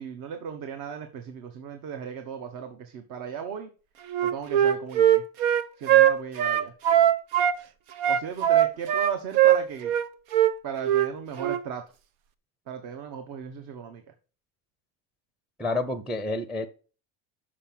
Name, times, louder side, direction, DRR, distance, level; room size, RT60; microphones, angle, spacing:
voice 1, 0.0-3.7 4.2-5.2 5.8-6.7 8.1-9.9 10.6-11.8 12.7-14.0, right 7 dB, 50° right, 1.3 m, -37 dB
Wind instrument woodwind instrument, 4.1-7.6 8.0-10.1 10.3-10.5 10.8-11.1 11.4-11.6, right 11 dB, 70° right, 1.0 m, -20 dB
voice 2, 15.6-16.7, left 2 dB, ahead, 0.6 m, -29 dB
6.7 x 6.2 x 7.4 m
cardioid pair, 135°, 40 cm